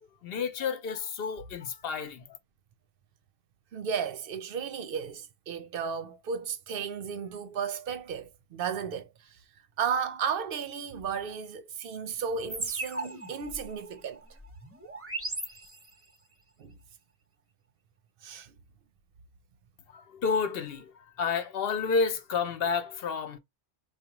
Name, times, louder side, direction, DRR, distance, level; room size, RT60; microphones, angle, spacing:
voice 1, 0.2-2.4 19.9-23.4, left 5 dB, 60° left, 0.8 m, -30 dB
voice 2, 3.7-9.4 9.8-14.2 16.6-16.8 18.2-18.5, right 6 dB, 60° right, 0.7 m, -34 dB
sound 1, 12.5-16.2, right 2 dB, 15° right, 0.6 m, -38 dB
4.7 x 2.2 x 2.9 m
omnidirectional pair, 1.2 m